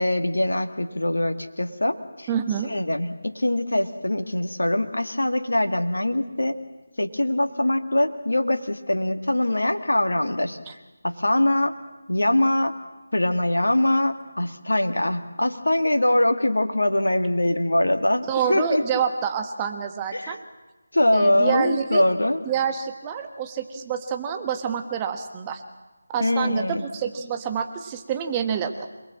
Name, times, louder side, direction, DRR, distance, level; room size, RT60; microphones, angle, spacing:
voice 1, 0.0-2.3 2.6-6.6 7.0-10.6 11.0-11.7 12.1-12.8 13.1-18.8 20.1-20.4 20.9-22.4 26.2-26.8, left 1 dB, 65° left, 6 dB, 1.9 m, -23 dB
voice 2, 2.3-2.7 10.7-10.8 18.3-20.4 21.1-22.0 22.4-25.6 26.1-28.9, right 8 dB, 15° right, 5 dB, 1.3 m, -27 dB
27.0 x 20.5 x 7.5 m, 1.1 s
figure-of-eight pair, 160°, 0 cm